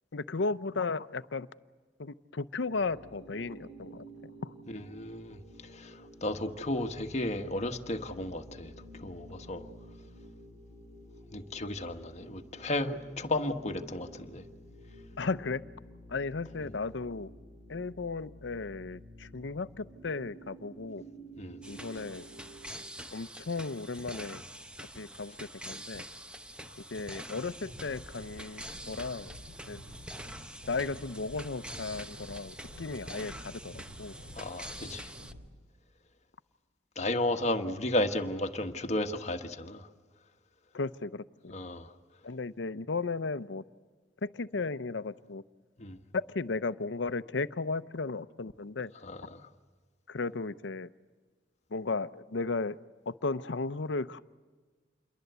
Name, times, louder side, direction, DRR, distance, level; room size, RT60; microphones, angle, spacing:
voice 1, 0.1-1.5 2.0-4.0 4.4-4.5 15.2-15.6 16.1-17.3 17.7-21.0 21.7-22.3 23.1-24.4 24.8-25.3 25.6-26.0 26.9-29.3 29.7-29.8 30.7-34.1 40.7-41.5 42.2-43.6 44.2-45.4 46.1-48.9 50.1-50.9 51.7-52.8 53.1-54.2, left 3 dB, 85° left, 0.7 m, -35 dB
sound 1, 2.7-22.7, right 1 dB, 25° right, 5.9 m, -51 dB
voice 2, 4.7-5.4 5.7-5.9 6.2-9.6 11.3-14.4 21.4-21.6 34.4-35.1 37.0-39.9 41.5-41.9 45.8-46.0 49.0-49.4, left 1 dB, 40° left, 1.5 m, -33 dB
sound 2, 21.6-35.3, right 1 dB, 5° right, 0.9 m, -46 dB
sound 3, 27.4-35.4, equal, 55° right, 4.6 m, -50 dB
28.0 x 22.5 x 8.1 m
head